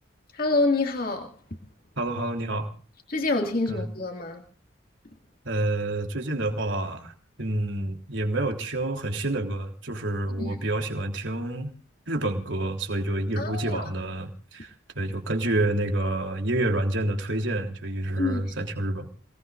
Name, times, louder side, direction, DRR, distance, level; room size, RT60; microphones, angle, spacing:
voice 1, 0.3-1.3 3.1-4.4 10.4-10.6 13.4-13.8 18.2-18.4, left 2 dB, 50° left, 2.3 m, -26 dB
voice 2, 2.0-2.7 3.7-3.9 5.5-11.7 12.1-19.1, right 1 dB, 75° right, 3.4 m, -28 dB
28.5 x 19.5 x 2.6 m
head